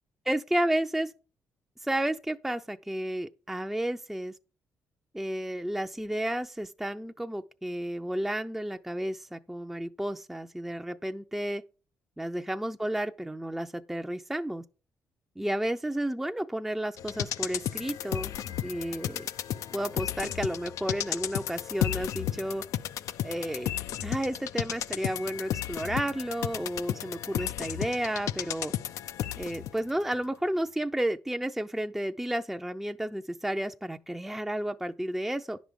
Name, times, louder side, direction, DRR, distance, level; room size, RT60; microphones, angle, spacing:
voice 1, 0.3-1.1 1.8-4.4 5.1-11.6 12.2-14.6 15.4-18.3 18.6-19.3 19.7-22.6 23.2-23.7 24.0-28.7 29.4-35.6, right 1 dB, 5° right, 0.5 m, -32 dB
sound 1, 17.0-29.8 30.1-30.2, left 11 dB, 80° left, 0.5 m, -34 dB
10.0 x 6.2 x 5.1 m
cardioid pair, 80°, 5 cm